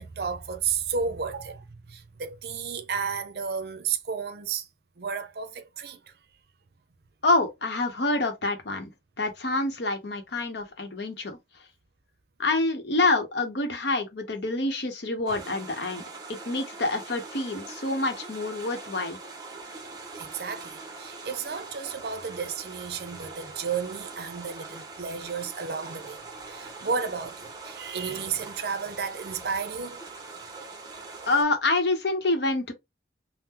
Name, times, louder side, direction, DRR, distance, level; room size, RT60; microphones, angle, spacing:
voice 1, 0.0-4.7 5.0-6.0 20.1-30.0, right 6 dB, 60° right, 0.5 m, -33 dB
voice 2, 7.2-8.9 9.2-11.4 12.4-16.0 16.3-19.2 31.3-32.7, left 2 dB, 70° left, 0.8 m, -27 dB
sound 1, 15.3-31.4, right 3 dB, 20° right, 0.7 m, -42 dB
3.6 x 2.0 x 2.8 m
head